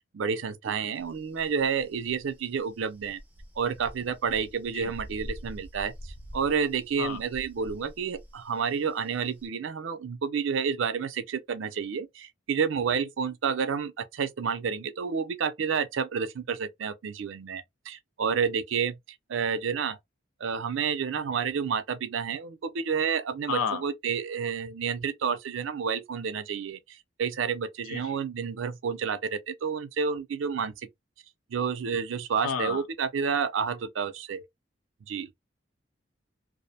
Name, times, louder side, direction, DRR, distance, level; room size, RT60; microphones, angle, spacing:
voice 1, 0.1-3.2 3.6-19.0 19.3-20.0 20.4-30.9 31.5-34.4 35.1-35.3, right 6 dB, 70° right, 0.4 m, -30 dB
sound 1, 1.0-9.5, equal, 10° right, 0.4 m, -46 dB
voice 2, 23.5-23.8 27.9-28.0 32.4-32.8, left 6 dB, 85° left, 0.4 m, -30 dB
2.4 x 2.0 x 2.6 m
head